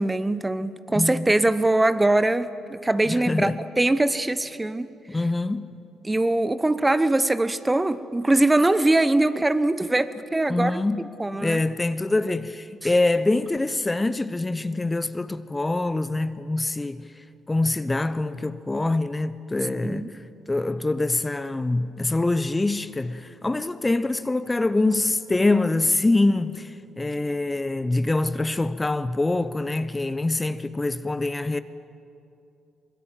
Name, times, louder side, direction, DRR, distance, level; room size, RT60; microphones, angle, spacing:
voice 1, 0.0-4.9 6.0-10.8 11.2-11.6 19.8-20.2, right 2 dB, 15° right, 1.0 m, -22 dB
voice 2, 0.9-1.3 3.1-3.6 5.1-5.7 10.5-11.2 11.4-17.0 17.5-20.1 20.5-31.6, left 2 dB, 20° left, 0.9 m, -25 dB
24.5 x 22.0 x 7.6 m
hypercardioid pair, 45°, 0 cm